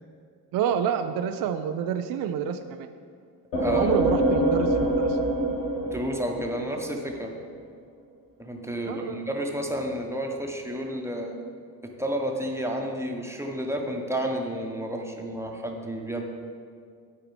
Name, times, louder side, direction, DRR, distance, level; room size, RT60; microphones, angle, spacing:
voice 1, 0.5-2.9 3.7-5.2 8.9-9.2, right 8 dB, 50° right, 8 dB, 0.5 m, -28 dB
sound 1, 3.5-7.1, right 1 dB, 80° left, 1.4 m, -25 dB
voice 2, 3.6-3.9 5.8-7.3 8.4-11.4 11.8-16.2, equal, 5° right, 1 dB, 1.1 m, -31 dB
12.5 x 4.6 x 3.4 m, 2.2 s
hypercardioid pair, 45°, 47 cm